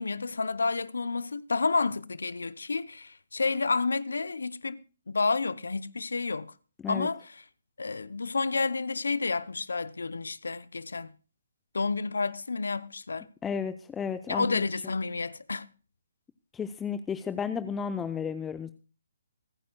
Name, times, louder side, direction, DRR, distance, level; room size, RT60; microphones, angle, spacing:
voice 1, 0.0-4.8 5.1-6.5 6.9-7.4 7.8-11.1 11.7-13.3 14.3-15.7, left 4 dB, 75° left, 0.7 m, -30 dB
voice 2, 13.4-14.6 16.5-18.7, left 6 dB, 10° left, 0.5 m, -33 dB
26.5 x 9.4 x 2.2 m
figure-of-eight pair, 140°, 0 cm